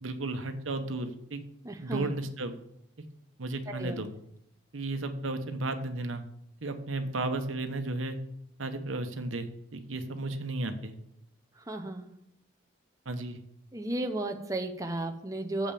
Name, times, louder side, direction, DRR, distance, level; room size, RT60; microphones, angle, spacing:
voice 1, 0.0-1.4 1.8-2.5 3.4-4.1 4.7-6.2 6.6-8.2 8.6-10.9 13.0-13.4, right 2 dB, 90° right, 8 dB, 1.0 m, -34 dB
voice 2, 1.6-2.1 3.7-4.0 11.7-12.1 13.7-15.7, right 2 dB, 15° right, 5 dB, 0.7 m, -34 dB
7.4 x 5.5 x 7.1 m, 0.76 s
head